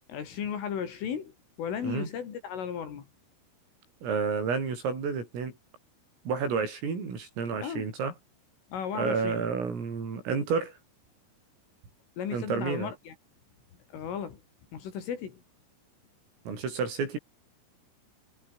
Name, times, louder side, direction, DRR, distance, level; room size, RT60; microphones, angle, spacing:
voice 1, 0.1-3.1 7.6-7.9 8.7-9.4 12.2-13.1 13.9-14.4 14.7-15.4, left 8 dB, 70° left, 6.2 m, -35 dB
voice 2, 4.0-5.6 6.3-8.1 8.9-10.8 12.3-12.9 16.5-17.2, right 5 dB, 80° right, 10.0 m, -30 dB
omnidirectional pair, 5.9 m